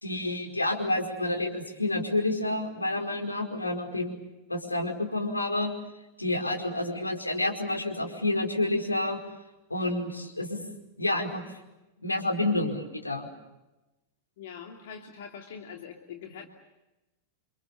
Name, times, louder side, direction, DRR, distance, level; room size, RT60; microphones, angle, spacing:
voice 1, 0.0-4.2 4.5-5.7 6.2-9.2 9.7-10.6 11.0-11.6 12.0-13.3, left 2 dB, 85° left, 1 dB, 5.0 m, -29 dB
voice 2, 14.4-16.5, left 7 dB, 55° left, 2 dB, 2.8 m, -43 dB
30.0 x 26.0 x 7.0 m, 1.0 s
figure-of-eight pair, 90°, 0 cm